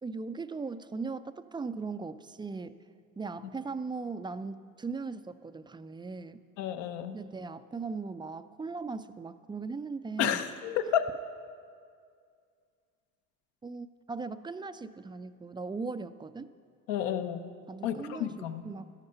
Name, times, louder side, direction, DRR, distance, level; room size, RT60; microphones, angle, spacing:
voice 1, 0.0-2.8 3.2-6.4 7.1-10.4 13.6-16.5 17.7-18.9, right 4 dB, 10° right, 12 dB, 0.3 m, -38 dB
voice 2, 6.6-7.2 10.2-11.1 16.9-17.5 17.8-18.6, left 9 dB, 75° left, 9 dB, 1.0 m, -31 dB
12.5 x 11.5 x 5.6 m, 2.2 s
supercardioid pair, 75°, 43 cm